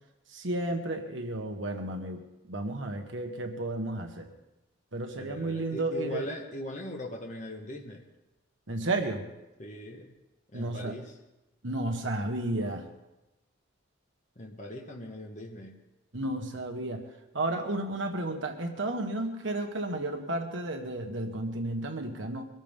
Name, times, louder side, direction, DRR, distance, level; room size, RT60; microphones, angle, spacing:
voice 1, 0.3-2.2 2.5-4.3 4.9-6.3 8.7-9.3 10.5-10.9 11.6-12.9 16.1-17.0 17.3-22.5, right 2 dB, 65° right, 4 dB, 1.5 m, -32 dB
voice 2, 5.2-8.1 9.6-10.1 10.5-11.2 14.3-15.8, left 1 dB, 35° left, 1 dB, 1.3 m, -40 dB
23.0 x 13.5 x 3.6 m, 0.97 s
head